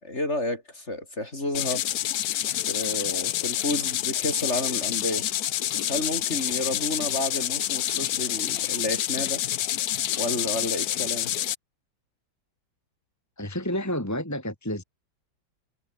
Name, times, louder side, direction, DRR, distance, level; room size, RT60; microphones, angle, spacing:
voice 1, 0.0-2.0 2.7-5.2 5.9-9.4 10.1-11.3, left 1 dB, 35° left, 5.6 m, -31 dB
sound 1, 1.5-11.6, left 12 dB, 65° left, 1.0 m, -28 dB
voice 2, 13.4-14.8, left 1 dB, 10° left, 3.4 m, -30 dB
omnidirectional pair, 2.2 m